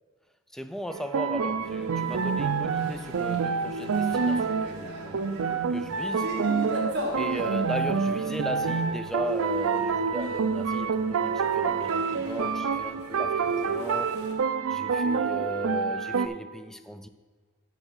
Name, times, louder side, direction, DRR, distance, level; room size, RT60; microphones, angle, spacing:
voice 1, 0.5-5.3 5.7-6.3 7.2-14.2 14.7-17.1, equal, ahead, 0.4 m, -37 dB
sound 1, 0.9-16.3, right 5 dB, 75° right, 0.4 m, -27 dB
sound 2, 1.6-14.3, equal, 55° right, 1.9 m, -41 dB
8.1 x 5.8 x 6.1 m
head